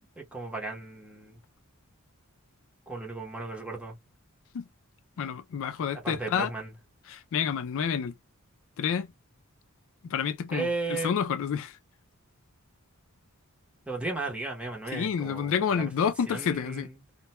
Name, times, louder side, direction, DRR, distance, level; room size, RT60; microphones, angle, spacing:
voice 1, 0.2-1.4 2.9-3.9 6.0-6.7 10.5-11.2 13.9-15.9 16.2-17.0, right 3 dB, 5° right, 0.7 m, -35 dB
voice 2, 5.2-6.5 7.1-8.1 8.8-9.1 10.1-11.7 14.9-16.9, left 7 dB, 60° left, 0.3 m, -29 dB
2.1 x 2.1 x 2.9 m
head